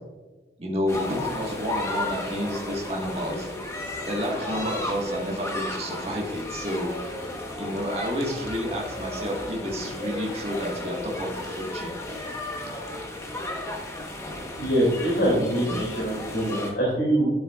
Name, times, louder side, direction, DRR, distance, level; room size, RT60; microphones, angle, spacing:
voice 1, 0.6-3.5 4.1-6.9 7.6-12.2, equal, 35° right, -2 dB, 1.5 m, -30 dB
sound 1, 0.9-16.7, left 1 dB, 15° left, 1.1 m, -34 dB
voice 2, 14.6-17.3, right 1 dB, 70° left, -6 dB, 2.7 m, -24 dB
10.5 x 7.0 x 2.4 m, 1.2 s
head